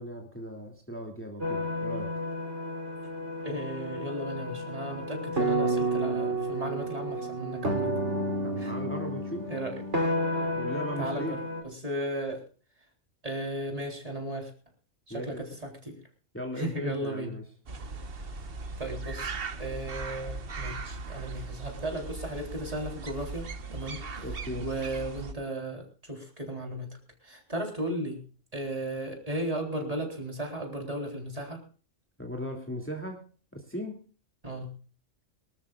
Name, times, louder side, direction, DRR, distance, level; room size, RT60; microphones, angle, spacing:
voice 1, 0.0-2.2 8.4-9.5 10.5-11.4 15.1-15.4 16.3-17.5 24.2-24.7 32.2-33.3 33.5-34.0, equal, 10° left, 1 dB, 2.4 m, -37 dB
sound 1, 1.4-11.6, right 1 dB, 70° right, 3.6 m, -31 dB
voice 2, 3.4-7.9 8.6-8.7 9.5-9.8 11.0-11.2 11.6-12.4 13.2-14.5 15.1-15.5 15.9-16.0 16.6-17.3 18.8-19.3 19.6-24.2 24.6-26.9 27.2-28.2 28.5-31.6 34.4-34.7, right 1 dB, 30° right, 2 dB, 3.8 m, -35 dB
sound 2, 17.7-25.3, right 3 dB, 50° right, 1.3 m, -38 dB
24.0 x 13.0 x 2.4 m, 0.38 s
omnidirectional pair, 1.3 m